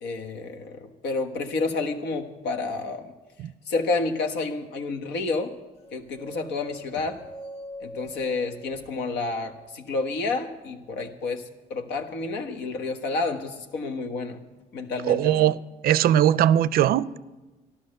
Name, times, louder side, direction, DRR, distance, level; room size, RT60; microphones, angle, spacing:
voice 1, 0.0-3.1 3.7-5.5 5.9-7.2 7.8-11.4 11.7-14.4 14.7-15.5, left 3 dB, 80° left, 1.4 m, -30 dB
sound 1, 5.8-9.9, equal, 35° left, 1.3 m, -43 dB
voice 2, 15.0-15.6 15.8-17.2, right 11 dB, 60° right, 0.4 m, -20 dB
13.0 x 11.5 x 6.5 m
cardioid pair, 110°, 17 cm